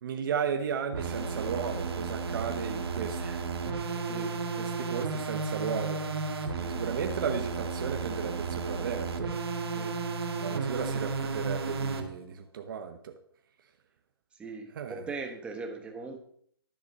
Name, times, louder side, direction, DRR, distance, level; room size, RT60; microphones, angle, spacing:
voice 1, 0.0-3.2 3.9-6.0 6.4-9.3 10.4-13.1 14.7-15.1, right 7 dB, 55° right, 6 dB, 1.1 m, -35 dB
sound 1, 0.9-12.1, right 4 dB, 80° right, 1.7 m, -33 dB
voice 2, 14.4-16.2, right 3 dB, 10° right, 4 dB, 1.1 m, -40 dB
11.0 x 6.5 x 5.3 m, 0.64 s
hypercardioid pair, 160°, 13 cm